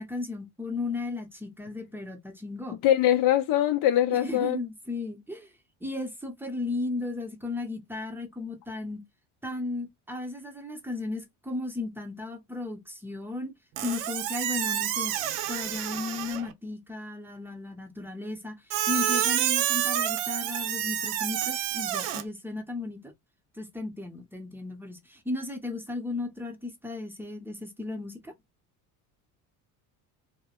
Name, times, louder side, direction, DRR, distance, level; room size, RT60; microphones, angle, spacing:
voice 1, 0.0-2.8 4.1-5.5 5.8-9.0 9.4-13.5 13.8-15.1 15.5-18.6 18.9-23.1 23.5-28.3, left 2 dB, 5° right, 0.7 m, -35 dB
voice 2, 2.8-4.6, left 12 dB, 60° left, 0.5 m, -22 dB
Squeak, 13.8-16.5 18.7-22.2, right 11 dB, 85° right, 0.6 m, -28 dB
2.1 x 2.0 x 2.8 m
supercardioid pair, 100°, 39 cm